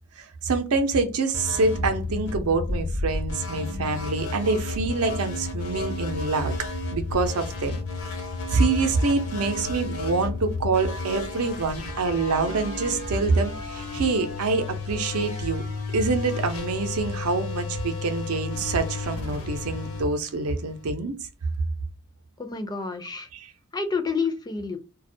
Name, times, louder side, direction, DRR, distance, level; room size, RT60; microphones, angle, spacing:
voice 1, 0.2-6.5 6.9-7.8 8.5-15.6 15.9-21.1 23.3-23.5, right 3 dB, 80° right, 0.6 m, -26 dB
sound 1, 1.3-20.9, left 3 dB, 65° left, 0.8 m, -32 dB
voice 2, 22.4-23.3 23.7-24.8, left 4 dB, 20° left, 0.4 m, -29 dB
2.3 x 2.0 x 2.6 m
head